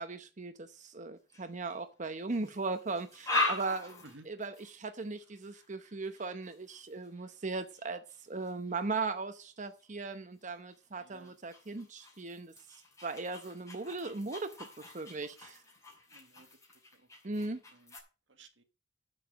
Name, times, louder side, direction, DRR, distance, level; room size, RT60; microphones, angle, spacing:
voice 1, 0.0-12.5 13.0-15.6 17.2-17.6, right 3 dB, 40° right, 0.9 m, -38 dB
sound 1, 1.3-1.8 2.3-8.8 9.6-9.8 10.4-18.0, left 2 dB, 15° left, 5.4 m, -41 dB
voice 2, 11.0-11.3 16.1-16.5 16.9-17.9 18.3-18.6, right 2 dB, 85° right, 1.8 m, -57 dB
8.1 x 7.6 x 7.5 m
head